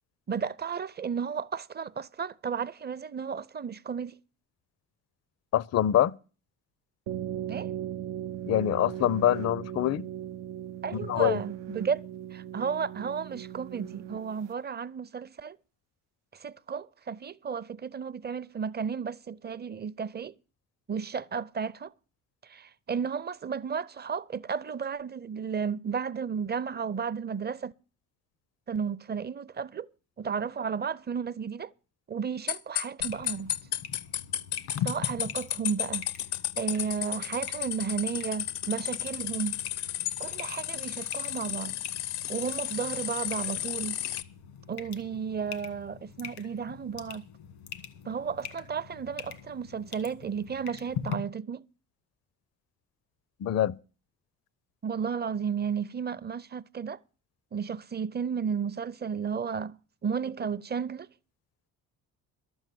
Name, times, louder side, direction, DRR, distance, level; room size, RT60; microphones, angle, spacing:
voice 1, 0.3-4.2 7.5-7.7 10.8-12.0 12.3-15.6 16.3-20.3 20.9-21.9 22.4-27.7 28.7-29.9 30.2-31.7 32.1-33.5 34.8-36.0 36.6-39.6 40.2-41.8 42.3-44.0 44.7-47.3 48.1-51.7 54.8-57.0 57.5-59.8 60.0-61.1, right 6 dB, 25° right, 0.6 m, -33 dB
voice 2, 5.5-6.2 8.5-10.1 10.9-11.4 53.4-53.8, left 11 dB, 40° left, 0.5 m, -25 dB
sound 1, 7.1-14.5, right 11 dB, 80° right, 0.7 m, -38 dB
sound 2, 32.5-44.2, left 12 dB, 75° left, 0.7 m, -33 dB
sound 3, 33.0-51.1, left 9 dB, 90° left, 1.7 m, -42 dB
12.0 x 7.9 x 7.5 m
supercardioid pair, 55°, 40 cm